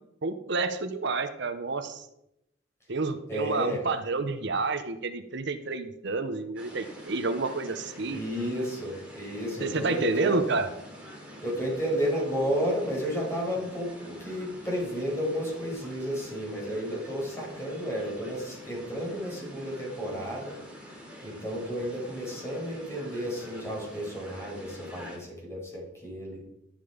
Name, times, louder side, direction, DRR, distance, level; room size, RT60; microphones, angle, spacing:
voice 1, 0.2-2.1 2.9-8.2 9.6-10.7, right 3 dB, 60° right, 9 dB, 1.0 m, -29 dB
voice 2, 3.3-3.8 8.1-10.4 11.4-20.6 21.2-26.4, equal, 15° left, -3 dB, 5.9 m, -32 dB
sound 1, 6.5-25.2, equal, 5° right, 4.5 m, -46 dB
12.5 x 11.0 x 5.1 m, 0.84 s
head